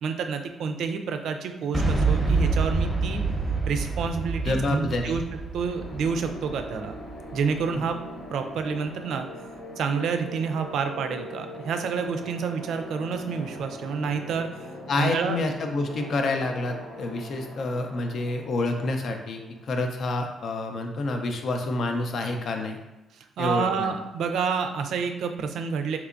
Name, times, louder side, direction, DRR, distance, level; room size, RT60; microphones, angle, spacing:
voice 1, 0.0-3.2 3.7-5.2 5.5-6.9 7.3-8.0 8.3-9.3 9.8-14.5 15.0-15.4 23.1-26.0, right 6 dB, 75° right, 6 dB, 0.3 m, -29 dB
Boom, 1.7-7.6, right 3 dB, 10° right, 0.7 m, -27 dB
voice 2, 4.5-5.2 14.9-19.4 19.7-22.8 23.4-23.9, left 2 dB, 60° left, 4 dB, 0.5 m, -28 dB
sound 1, 5.5-20.2, left 1 dB, 85° left, 0.8 m, -42 dB
3.3 x 2.9 x 2.5 m, 1.0 s
cardioid pair, 90°, 0 cm